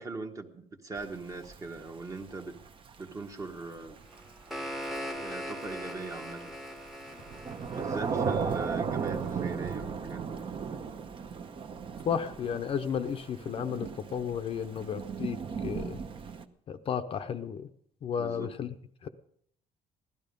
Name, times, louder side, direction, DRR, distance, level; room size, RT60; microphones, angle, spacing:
voice 1, 0.0-2.6 3.0-4.0 5.1-6.6 7.7-10.4 18.2-18.5, right 3 dB, 25° right, 5 dB, 1.2 m, -40 dB
Thunder / Rain, 1.0-16.4, right 6 dB, 40° right, 0.9 m, -36 dB
sound 1, 4.1-9.1, equal, ahead, 1.0 m, -41 dB
voice 2, 12.0-15.4 15.6-16.0 16.7-17.7 18.0-18.7 19.0-19.1, left 7 dB, 40° left, 9 dB, 0.7 m, -33 dB
16.5 x 12.0 x 5.3 m, 0.65 s
cardioid pair, 145°, 14 cm